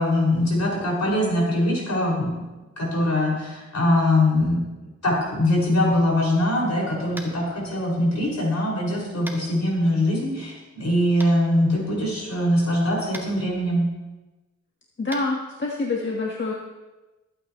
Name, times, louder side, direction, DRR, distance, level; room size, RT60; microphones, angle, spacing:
voice 1, 0.0-2.5 2.8-4.6 5.0-13.9, left 1 dB, 65° left, -4 dB, 5.7 m, -22 dB
Tap, 7.1-7.4 9.2-9.4 11.2-11.3 13.1-13.3 15.1-15.2, right 1 dB, 5° right, 1.9 m, -37 dB
voice 2, 15.0-16.5, left 3 dB, 40° left, -2 dB, 1.4 m, -26 dB
25.5 x 9.2 x 3.1 m, 1.1 s
wide cardioid pair, 85°, 30 cm